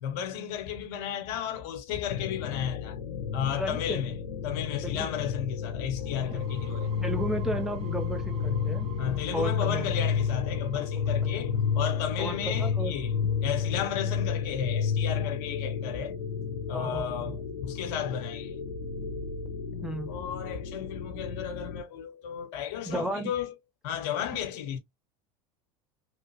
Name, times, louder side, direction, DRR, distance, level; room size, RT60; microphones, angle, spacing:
voice 1, 0.0-3.0 3.3-4.1 4.4-6.9 9.0-13.1 13.4-16.2 16.7-18.6 20.1-23.5 23.8-24.8, left 9 dB, 55° left, 1.0 m, -34 dB
sound 1, 2.1-21.8, left 6 dB, 80° left, 0.5 m, -31 dB
voice 2, 3.6-4.0 4.8-5.1 6.3-6.4 7.0-8.9 9.3-9.9 11.3-11.4 12.2-12.9 16.7-17.4 19.8-20.1 22.8-23.3, right 1 dB, 5° right, 0.9 m, -33 dB
sound 2, 6.0-13.6, right 4 dB, 30° right, 1.1 m, -47 dB
3.1 x 2.3 x 2.9 m
hypercardioid pair, 85°, 20 cm